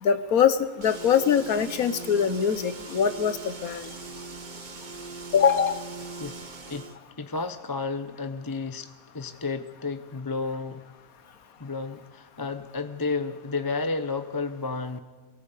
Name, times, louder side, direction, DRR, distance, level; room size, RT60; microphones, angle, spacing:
voice 1, 0.0-3.9 5.3-5.8, left 7 dB, 90° left, 12 dB, 1.5 m, -23 dB
sound 1, 0.8-7.0, right 3 dB, 35° right, 1.3 m, -40 dB
voice 2, 7.2-10.9 11.6-15.0, left 4 dB, 20° left, 8 dB, 0.6 m, -32 dB
23.5 x 18.0 x 8.3 m, 1.4 s
omnidirectional pair, 1.5 m